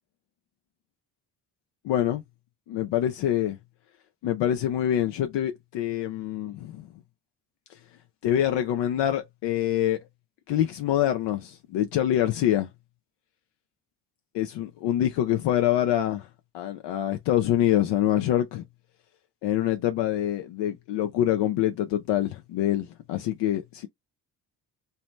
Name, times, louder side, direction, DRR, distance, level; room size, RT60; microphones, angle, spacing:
voice 1, 1.8-2.2 2.7-3.6 4.2-6.9 8.2-10.0 10.5-12.7 14.3-16.3 16.5-18.6 19.4-23.9, left 11 dB, 75° left, 0.5 m, -25 dB
2.7 x 2.1 x 3.0 m
cardioid pair, 80°, 42 cm